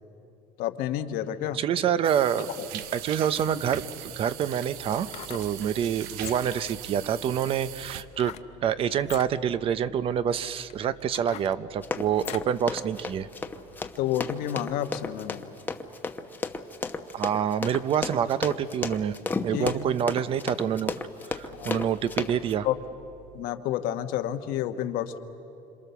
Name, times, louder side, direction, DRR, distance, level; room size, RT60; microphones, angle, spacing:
voice 1, 0.6-1.6 2.6-2.7 14.0-15.5 19.5-19.9 21.6-21.8 22.6-22.8 23.3-25.2, left 11 dB, 70° left, 8 dB, 1.2 m, -30 dB
voice 2, 1.6-2.5 2.7-3.8 4.2-8.3 8.6-13.3 17.1-19.2 19.4-20.9 21.3-22.7, right 9 dB, 40° right, 15 dB, 0.6 m, -27 dB
sound 1, 2.0-8.0, right 12 dB, 85° right, 0.9 m, -40 dB
sound 2, 5.0-5.6 6.1-6.7 8.1-8.5 9.0-9.3 10.0-10.1 10.7-12.6 13.0-13.1, left 12 dB, 45° left, 0.6 m, -42 dB
Run, 11.8-22.5, left 3 dB, 10° left, 0.8 m, -33 dB
27.5 x 26.5 x 6.9 m, 2.9 s
cardioid pair, 160°, 15 cm